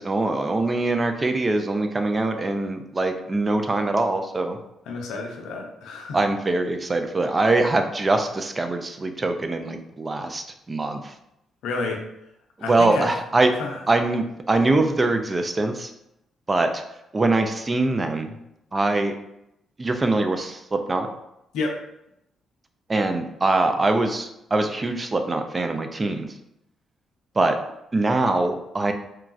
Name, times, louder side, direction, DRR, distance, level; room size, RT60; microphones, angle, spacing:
voice 1, 0.0-4.6 6.1-11.1 12.6-13.5 13.9-15.9 16.5-16.8 17.1-18.3 18.7-19.1 19.8-21.1 22.9-26.3 27.4-27.6 27.9-28.9, right 2 dB, 30° right, 6 dB, 0.4 m, -23 dB
voice 2, 4.9-6.2 11.6-12.1 12.6-13.1 13.6-13.8 21.5-21.8, left 3 dB, 80° left, 1 dB, 0.5 m, -29 dB
3.0 x 2.3 x 2.4 m, 0.82 s
supercardioid pair, 60°, 0 cm